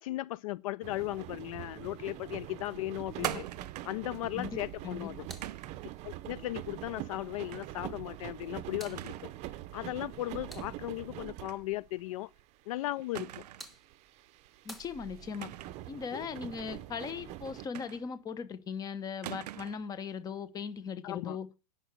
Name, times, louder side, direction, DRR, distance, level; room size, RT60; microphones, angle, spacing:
voice 1, 0.0-3.5 3.8-5.2 6.0-9.3 9.7-12.3 12.7-13.4 16.1-16.2 21.0-21.4, left 16 dB, 55° left, 0.4 m, -37 dB
sound 1, 0.8-12.0 12.4-12.5 12.9-17.7, right 14 dB, 35° right, 0.7 m, -44 dB
sound 2, 3.2-4.1 5.4-5.9 7.5-7.8 8.2-8.3 8.9-9.4 9.7-9.8 11.4-11.7 12.0-12.1 13.1-13.8 15.3-15.9 17.7-18.3 19.2-19.9, right 13 dB, 80° right, 0.6 m, -42 dB
voice 2, 4.8-5.3 14.6-15.5 15.9-21.5, left 6 dB, 20° left, 1.0 m, -39 dB
sound 3, 13.5-15.6, right 1 dB, ahead, 1.4 m, -54 dB
10.0 x 5.9 x 8.1 m
hypercardioid pair, 140°, 20 cm